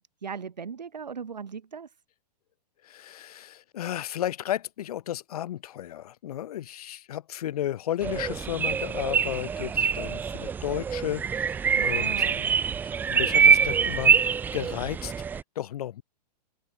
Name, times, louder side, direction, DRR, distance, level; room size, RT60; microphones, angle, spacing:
voice 1, 0.0-1.9 11.8-12.5, right 6 dB, 85° right, 1.1 m, -38 dB
voice 2, 2.8-12.3 12.8-16.0, left 12 dB, 60° left, 2.5 m, -33 dB
sound 1, 8.0-15.4, right 6 dB, 10° right, 0.3 m, -24 dB
hypercardioid pair, 115°, 21 cm